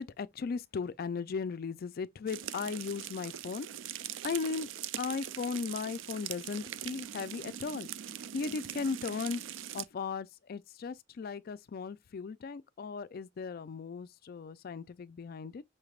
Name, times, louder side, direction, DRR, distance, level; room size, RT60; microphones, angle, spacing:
voice 1, 0.0-3.7 4.2-4.7 5.0-7.9 8.3-9.4 9.7-15.6, left 5 dB, 50° left, 0.4 m, -37 dB
sound 1, 2.3-9.9, right 11 dB, 75° right, 0.3 m, -42 dB
5.7 x 3.3 x 2.3 m
head